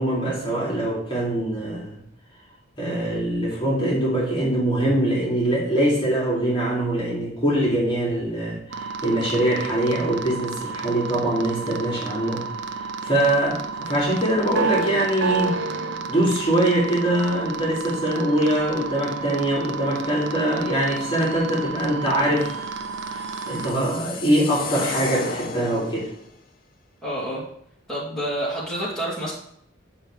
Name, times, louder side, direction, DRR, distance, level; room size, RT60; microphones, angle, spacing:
voice 1, 0.0-2.0 2.8-12.4 13.0-15.5 16.1-22.6 23.1-26.1, right 1 dB, 25° left, -6 dB, 2.5 m, -23 dB
sound 1, 8.7-23.7, right 4 dB, 60° right, 0.6 m, -31 dB
sound 2, 23.0-26.2, left 4 dB, 45° left, 0.7 m, -33 dB
voice 2, 27.0-27.4 27.9-29.3, right 1 dB, 5° left, -9 dB, 2.6 m, -28 dB
9.9 x 5.9 x 3.3 m, 0.70 s
head